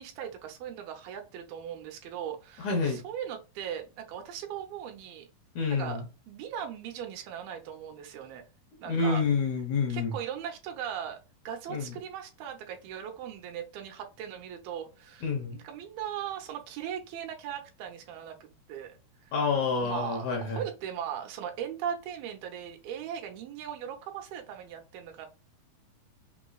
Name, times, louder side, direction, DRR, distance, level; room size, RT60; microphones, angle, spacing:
voice 1, 0.0-5.3 5.7-8.4 8.8-9.2 9.9-11.2 11.5-19.0 19.2-19.3 19.8-25.3, right 9 dB, 80° right, 2.6 m, -39 dB
voice 2, 2.6-3.0 5.6-6.1 8.9-10.1 11.7-11.9 15.2-15.6 19.3-20.6, left 4 dB, 65° left, 2.0 m, -28 dB
6.0 x 3.0 x 2.3 m
omnidirectional pair, 4.4 m